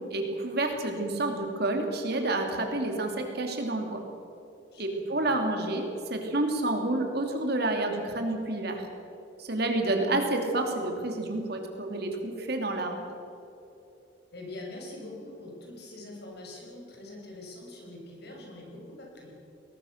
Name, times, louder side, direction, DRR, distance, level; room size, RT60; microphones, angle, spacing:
voice 1, 0.0-4.0 4.8-8.8 9.4-13.0, right 2 dB, 55° right, 3 dB, 2.9 m, -29 dB
voice 2, 4.7-5.3 14.3-19.3, left 2 dB, 55° left, -1 dB, 6.2 m, -44 dB
21.0 x 19.5 x 6.6 m, 2.9 s
head